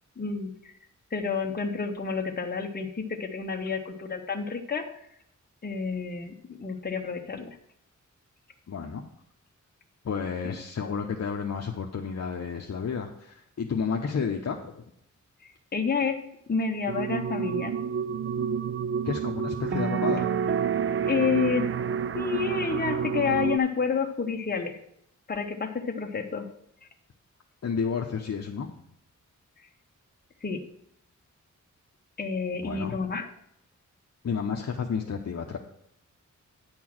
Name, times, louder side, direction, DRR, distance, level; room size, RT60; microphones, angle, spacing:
voice 1, 0.2-0.5 1.1-4.9 5.6-7.6 10.4-10.5 15.7-16.2 16.5-17.7 21.1-21.7 22.1-24.8 25.3-26.5 30.4-30.6 32.2-33.3, left 5 dB, 30° left, 3 dB, 1.1 m, -29 dB
voice 2, 8.7-9.0 10.0-14.8 19.0-20.3 27.6-28.7 32.6-33.1 34.2-35.6, left 6 dB, 55° left, 1 dB, 0.9 m, -31 dB
sound 1, 16.9-23.6, right 7 dB, 45° right, 0.4 m, -29 dB
9.6 x 4.6 x 7.5 m, 0.73 s
wide cardioid pair, 110°, 31 cm